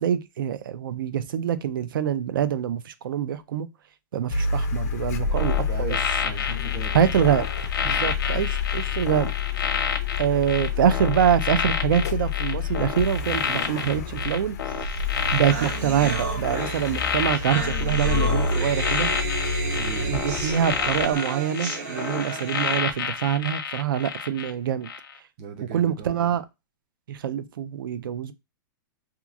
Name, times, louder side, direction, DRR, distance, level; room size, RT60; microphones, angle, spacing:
voice 1, 0.0-3.7 4.1-5.5 6.9-7.5 7.8-9.3 10.2-14.6 15.3-19.1 20.1-24.9 25.7-26.4 27.1-28.3, right 9 dB, 75° right, 0.4 m, -25 dB
Car, 4.3-21.2, left 5 dB, 50° left, 0.3 m, -29 dB
voice 2, 5.2-7.0 7.8-8.4 19.7-20.1 25.4-26.4, right 4 dB, 30° right, 0.6 m, -38 dB
sound 1, 5.4-24.5 24.8-25.1, left 6 dB, 90° left, 0.6 m, -30 dB
sound 2, 14.9-15.0 15.2-22.8, right 4 dB, 50° right, 1.0 m, -33 dB
2.9 x 2.3 x 2.4 m
supercardioid pair, 175°, 12 cm